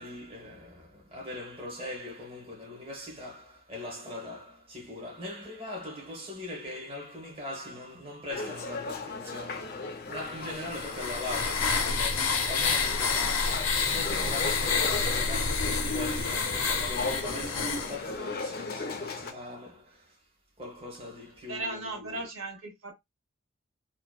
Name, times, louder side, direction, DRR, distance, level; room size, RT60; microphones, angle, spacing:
voice 1, 0.0-20.2 20.6-22.3, left 1 dB, 25° right, 0.8 m, -41 dB
sound 1, 8.3-19.3, left 3 dB, 45° left, 0.4 m, -37 dB
sound 2, 10.4-18.0, left 5 dB, 90° left, 0.6 m, -28 dB
voice 2, 13.9-14.4 21.5-22.9, right 2 dB, 75° right, 0.9 m, -38 dB
2.6 x 2.2 x 2.2 m
head